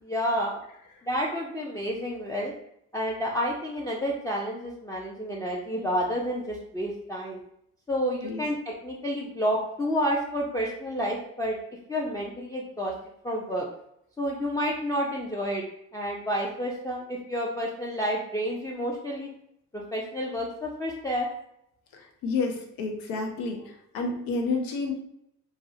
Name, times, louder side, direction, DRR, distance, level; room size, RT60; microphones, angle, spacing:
voice 1, 0.0-0.6 1.0-2.5 2.9-7.4 7.9-8.6 8.8-11.6 11.9-12.9 13.2-13.7 14.2-15.6 15.9-19.3 19.7-21.3, equal, 10° left, -4 dB, 0.4 m, -29 dB
voice 2, 22.2-24.9, left 3 dB, 85° left, 2 dB, 0.5 m, -30 dB
2.3 x 2.0 x 2.6 m, 0.76 s
supercardioid pair, 60°, 34 cm